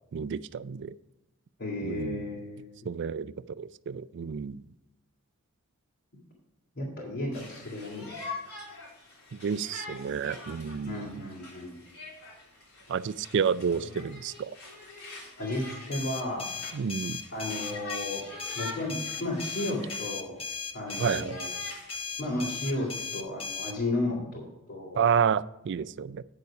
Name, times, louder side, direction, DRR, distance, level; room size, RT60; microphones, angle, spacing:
voice 1, 0.1-0.9 1.8-2.2 2.9-4.6 9.4-11.2 12.9-14.5 16.7-17.2 21.0-21.4 25.0-26.2, right 7 dB, 50° right, 17 dB, 0.3 m, -30 dB
voice 2, 1.6-2.7 6.7-8.0 10.9-11.8 13.7-13.9 15.4-16.5 17.3-18.2 18.5-20.4 20.7-21.5 22.2-25.1, left 1 dB, 55° left, -5 dB, 2.6 m, -33 dB
Conversation, 7.3-20.1 20.5-23.1, left 2 dB, 75° left, 3.5 m, -45 dB
sound 1, 15.9-23.8, left 5 dB, 25° left, 0.7 m, -37 dB
9.6 x 6.9 x 4.9 m, 0.95 s
head